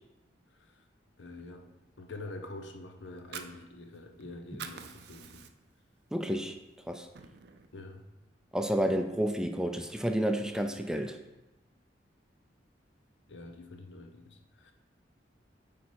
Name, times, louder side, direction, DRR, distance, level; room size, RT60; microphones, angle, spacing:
voice 1, 0.5-0.9 1.2-1.7 2.0-5.5 7.7-8.0 13.3-14.7, left 2 dB, 75° left, 5 dB, 0.8 m, -46 dB
Fire, 3.1-4.2 4.5-5.8 6.2-6.4 6.8-7.7, right 7 dB, 60° right, 0.5 m, -45 dB
voice 2, 6.1-6.5 6.9-7.1 8.5-11.2, equal, 5° right, 5 dB, 0.4 m, -30 dB
8.4 x 3.7 x 4.7 m, 1.0 s
head